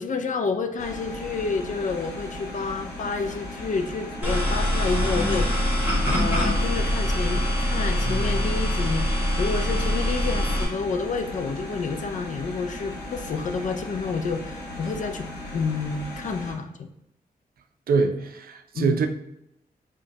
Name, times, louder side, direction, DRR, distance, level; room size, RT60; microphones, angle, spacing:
voice 1, 0.0-15.2 15.5-16.9 18.7-19.0, left 4 dB, 50° left, 8 dB, 0.4 m, -29 dB
sound 1, 0.8-16.5, left 1 dB, 80° left, 1.0 m, -37 dB
sound 2, 4.2-10.7, equal, 10° right, 1.2 m, -24 dB
voice 2, 17.9-19.1, right 5 dB, 70° right, 6 dB, 0.5 m, -24 dB
5.0 x 2.2 x 2.8 m, 0.81 s
wide cardioid pair, 110°, 16 cm